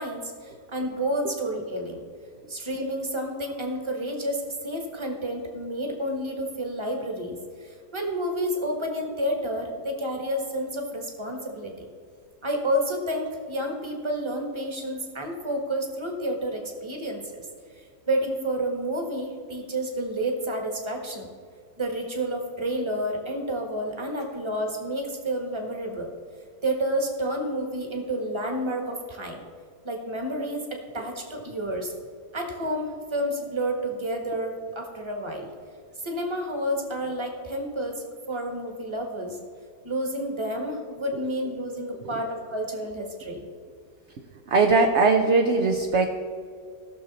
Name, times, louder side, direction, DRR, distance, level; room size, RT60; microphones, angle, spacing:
voice 1, 0.0-2.0 2.5-11.8 12.4-17.5 17.8-21.3 21.8-26.1 26.6-29.4 29.8-31.9 32.3-35.5 36.0-39.4 39.8-43.5, right 1 dB, 15° right, 3 dB, 1.3 m, -30 dB
voice 2, 44.2-46.1, right 3 dB, 55° right, 4 dB, 0.8 m, -21 dB
16.5 x 6.5 x 4.1 m, 2.1 s
omnidirectional pair, 1.9 m